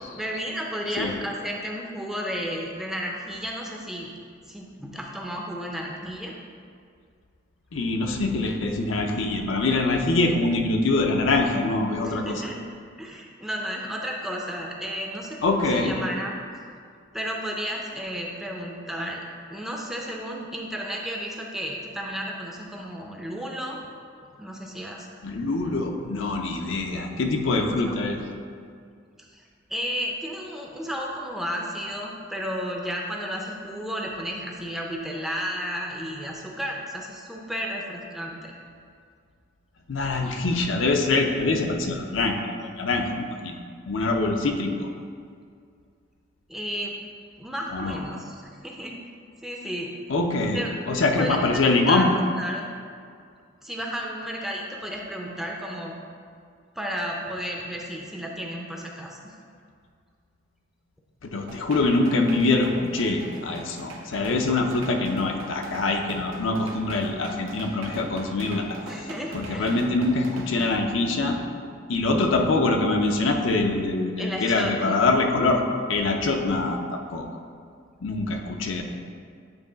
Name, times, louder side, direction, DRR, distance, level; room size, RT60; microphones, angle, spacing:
voice 1, 0.1-4.1 4.5-6.3 12.0-12.6 13.0-16.4 17.1-19.2 19.5-23.8 24.4-25.1 27.8-28.0 29.2-29.4 29.7-38.5 46.5-47.0 47.4-48.9 49.4-49.9 50.5-50.7 51.2-52.0 52.4-52.7 53.6-56.0 56.8-59.2 68.8-69.8 74.2-75.0, equal, ahead, -1 dB, 0.5 m, -33 dB
voice 2, 7.7-12.4 15.4-16.0 25.2-28.2 39.9-42.4 42.8-43.6 43.9-44.9 47.7-48.0 50.1-52.1 61.2-68.8 69.3-71.4 71.9-75.6 75.9-77.3 78.0-78.8, left 2 dB, 70° left, 3 dB, 0.6 m, -24 dB
sound 1, 61.5-70.7, right 1 dB, 80° right, 0.8 m, -41 dB
8.7 x 3.1 x 3.9 m, 2.2 s
head